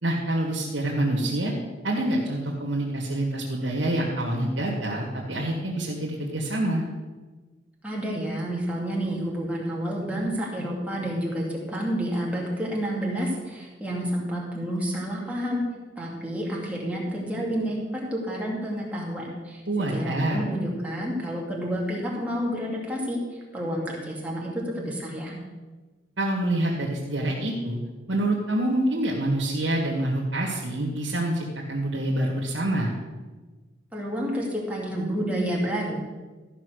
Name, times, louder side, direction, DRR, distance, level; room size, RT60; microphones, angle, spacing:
voice 1, 0.0-1.5 1.8-6.8 19.7-20.4 26.2-27.8 28.1-32.9, right 1 dB, 75° right, -4 dB, 2.0 m, -26 dB
voice 2, 7.8-15.6 16.0-25.3 33.9-36.0, equal, 10° right, -4 dB, 2.3 m, -29 dB
13.5 x 5.8 x 6.5 m, 1.3 s
head